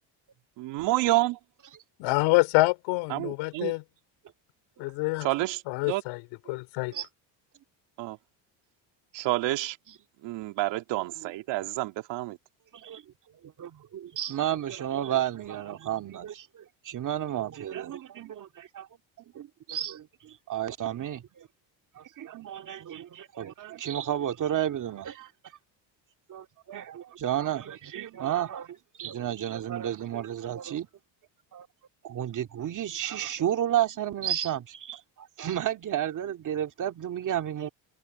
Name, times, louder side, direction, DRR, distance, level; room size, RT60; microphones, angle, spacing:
voice 1, 0.6-1.4 3.1-3.7 5.2-6.0 8.0-8.2 9.1-9.8 10.2-12.4, right 18 dB, 70° right, 2.3 m, -29 dB
voice 2, 2.0-3.8 4.8-5.3 5.7-6.2 6.5-6.9, left 23 dB, 85° left, 4.7 m, -26 dB
voice 3, 13.6-18.9 19.3-21.5 22.0-25.3 26.3-30.9 31.5-31.7 32.0-37.7, right 11 dB, 40° right, 2.3 m, -32 dB
cardioid pair, 125°, 45 cm